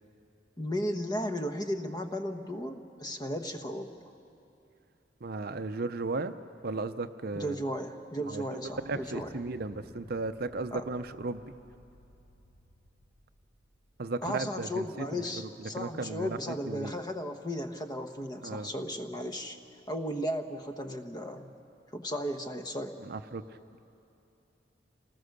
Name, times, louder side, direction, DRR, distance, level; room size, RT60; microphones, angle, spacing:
voice 1, 0.6-3.9 7.3-9.4 10.7-10.9 14.2-19.6 19.9-21.5 21.9-23.0, equal, 25° left, 6 dB, 1.1 m, -35 dB
voice 2, 5.2-6.3 6.6-7.6 8.2-11.4 14.0-16.4 16.7-16.9 18.4-18.7 23.0-23.4, right 3 dB, 55° right, 10 dB, 0.7 m, -35 dB
sound 1, 8.6-14.3, left 1 dB, 80° left, 5.6 m, -57 dB
28.0 x 19.5 x 6.6 m, 2.7 s
head